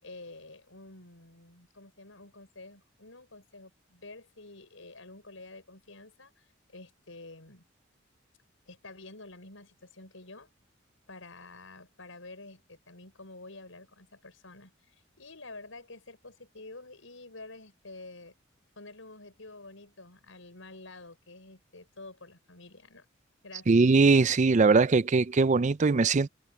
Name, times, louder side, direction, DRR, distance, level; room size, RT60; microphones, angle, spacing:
voice 1, 0.0-7.6 8.7-10.5 11.1-18.3 18.8-23.1 23.4-23.9, left 2 dB, 85° left, 5.9 m, -49 dB
voice 2, 23.7-26.3, right 4 dB, 35° right, 0.4 m, -21 dB
head